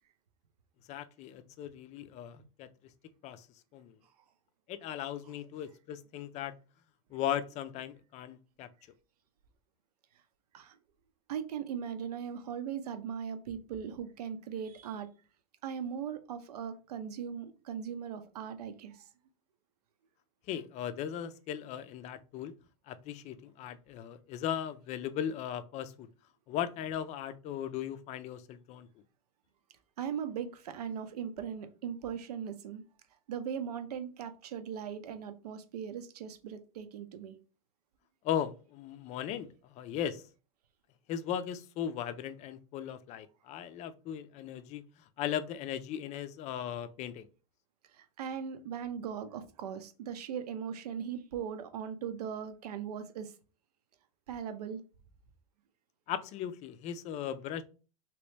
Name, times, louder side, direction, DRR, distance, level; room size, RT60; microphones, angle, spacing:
voice 1, 0.9-2.7 3.2-3.5 3.7-4.0 4.7-6.6 7.1-8.7 20.5-22.5 22.9-26.1 26.5-28.9 38.2-40.3 41.1-44.8 45.2-47.3 56.1-57.6, left 10 dB, 35° left, 0.4 m, -37 dB
voice 2, 11.3-15.1 15.6-19.1 30.0-32.8 33.3-37.4 47.9-53.3 54.3-54.8, right 8 dB, 80° right, 0.7 m, -39 dB
3.0 x 3.0 x 3.3 m
hypercardioid pair, 115°, 20 cm